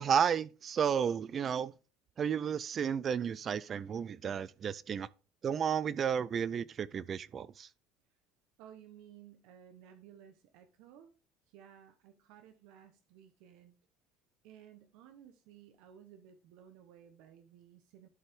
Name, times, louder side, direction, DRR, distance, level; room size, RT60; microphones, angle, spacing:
voice 1, 0.0-1.7 2.2-5.1 5.4-7.7, right 7 dB, 35° right, 0.4 m, -32 dB
voice 2, 8.6-11.1 11.5-13.7 14.4-18.1, right 9 dB, 70° right, 1.0 m, -56 dB
11.5 x 5.5 x 3.6 m
cardioid pair, 130°, 0 cm